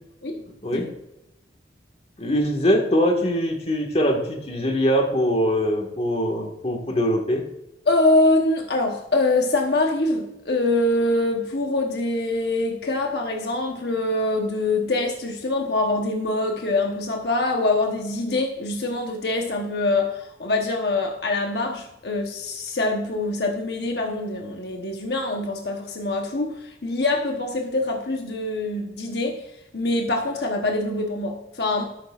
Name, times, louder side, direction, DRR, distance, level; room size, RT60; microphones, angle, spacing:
voice 1, 0.6-0.9 2.2-7.4, equal, 35° left, 3 dB, 1.6 m, -22 dB
voice 2, 7.9-29.4 29.7-31.8, left 2 dB, 65° left, 2 dB, 1.1 m, -24 dB
13.0 x 11.5 x 2.4 m, 0.91 s
head